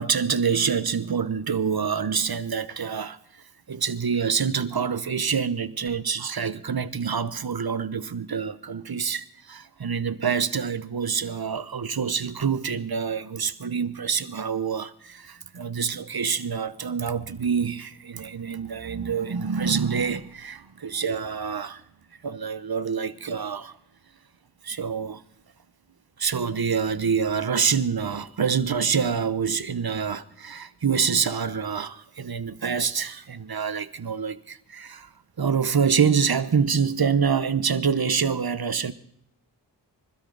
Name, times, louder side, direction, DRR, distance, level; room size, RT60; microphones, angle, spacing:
voice 1, 0.0-21.8 22.2-23.7 24.6-25.2 26.2-35.1 35.4-38.9, right 6 dB, 60° right, 1.0 m, -26 dB
25.5 x 12.5 x 4.0 m
wide cardioid pair, 75°, 42 cm